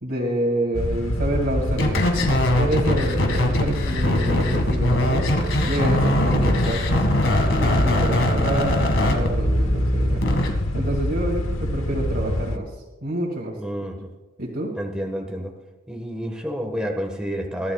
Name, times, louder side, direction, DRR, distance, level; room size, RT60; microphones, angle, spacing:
voice 1, 0.0-2.0 2.6-5.3 5.7-10.2 10.7-12.7 13.0-13.5 14.4-14.7, right 1 dB, 55° right, -5 dB, 2.3 m, -28 dB
sound 1, 0.7-12.6, left 1 dB, 90° left, 1.2 m, -26 dB
sound 2, 1.7-10.5, left 1 dB, 65° left, 2.0 m, -22 dB
voice 2, 13.6-14.1 14.8-15.5 15.9-17.7, equal, 5° right, 1 dB, 1.4 m, -29 dB
22.5 x 13.0 x 2.4 m, 1.1 s
head